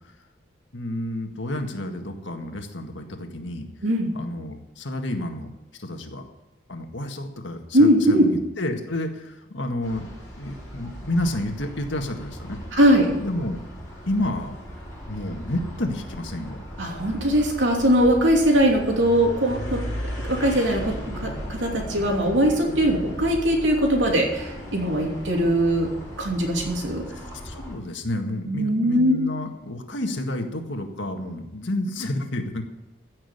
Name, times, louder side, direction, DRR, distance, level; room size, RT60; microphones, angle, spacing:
voice 1, 0.7-3.7 4.1-5.5 5.8-6.2 6.7-10.1 10.4-12.6 13.2-13.6 14.1-14.5 15.1-16.6 27.4-32.6, left 1 dB, 75° left, 4 dB, 1.8 m, -30 dB
voice 2, 3.8-4.1 7.7-8.3 12.7-13.1 16.8-19.8 20.2-25.9 26.2-27.0 28.4-29.2, equal, 75° right, 1 dB, 3.0 m, -21 dB
sound 1, 9.8-27.8, equal, 15° left, 6.2 m, -37 dB
15.5 x 6.3 x 9.4 m, 1.0 s
head